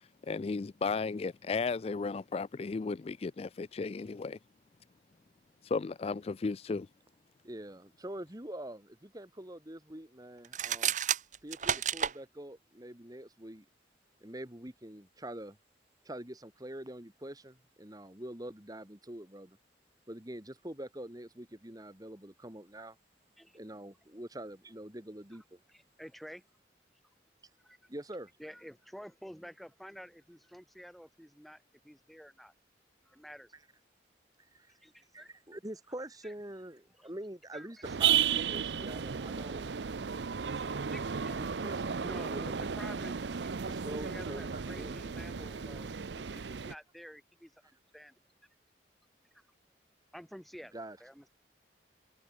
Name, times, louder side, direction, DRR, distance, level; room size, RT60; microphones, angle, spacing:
voice 1, 0.0-4.4 5.6-6.9, left 4 dB, 35° left, 0.3 m, -34 dB
voice 2, 7.4-10.9 11.4-13.7 14.2-15.6 16.0-19.6 20.1-23.0 23.5-25.6 27.9-28.3 34.4-34.7 35.1-39.7 41.4-42.7 43.6-45.0 50.7-51.0, right 1 dB, 20° right, 2.1 m, -45 dB
sound 1, 10.4-12.2, right 9 dB, 45° right, 1.1 m, -31 dB
voice 3, 25.7-26.4 27.6-27.8 28.4-32.5 33.1-33.5 34.7-35.3 36.2-36.3 37.0-37.1 37.5-37.9 40.6-41.7 42.0-43.7 44.0-47.5 47.9-48.2 50.1-51.3, equal, ahead, 4.5 m, -50 dB
sound 2, 37.8-46.7, right 7 dB, 75° right, 0.6 m, -34 dB
head